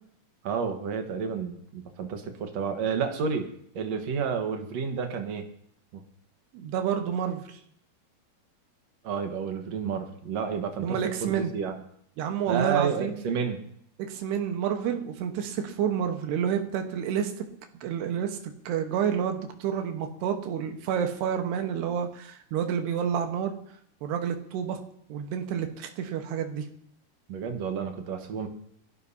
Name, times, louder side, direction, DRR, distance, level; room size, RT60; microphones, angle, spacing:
voice 1, 0.4-3.5 3.7-5.5 5.9-6.0 9.0-11.8 12.5-13.6 27.3-28.5, right 6 dB, 60° right, 5 dB, 1.9 m, -30 dB
voice 2, 6.5-7.6 10.8-11.5 12.2-13.3 14.0-17.5 17.8-18.4 18.7-23.5 24.0-24.8 25.1-26.7, right 8 dB, 90° right, 5 dB, 3.4 m, -29 dB
29.5 x 12.0 x 2.8 m, 0.69 s
omnidirectional pair, 4.6 m